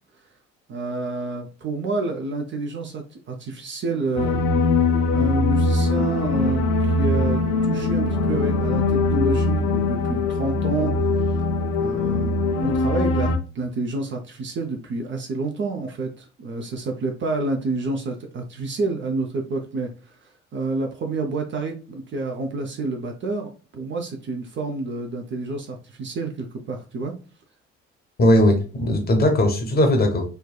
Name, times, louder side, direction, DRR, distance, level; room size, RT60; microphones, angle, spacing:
voice 1, 0.7-4.4 5.1-11.1 11.7-27.1, right 3 dB, 35° right, 0.5 m, -29 dB
sound 1, 4.2-13.4, left 3 dB, 60° left, 0.5 m, -21 dB
voice 2, 28.2-30.2, left 1 dB, 30° left, 0.8 m, -18 dB
3.3 x 2.2 x 2.2 m
figure-of-eight pair, 50°, 35 cm